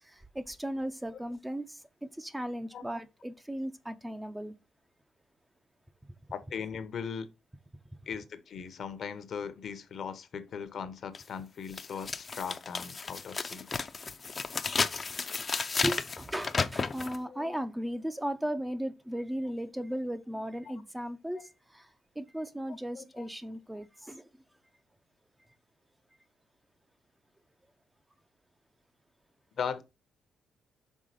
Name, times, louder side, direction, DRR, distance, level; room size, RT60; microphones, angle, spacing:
voice 1, 0.0-4.5 15.5-21.9 22.2-24.3, equal, 10° right, 0.6 m, -36 dB
voice 2, 6.3-7.3 8.1-13.9 17.3-17.6 22.9-23.3 29.6-29.8, left 7 dB, 60° left, 0.9 m, -39 dB
sound 1, 11.1-11.2 11.7-17.2, left 4 dB, 35° left, 0.5 m, -33 dB
5.5 x 3.6 x 4.9 m
cardioid pair, 90°, 0 cm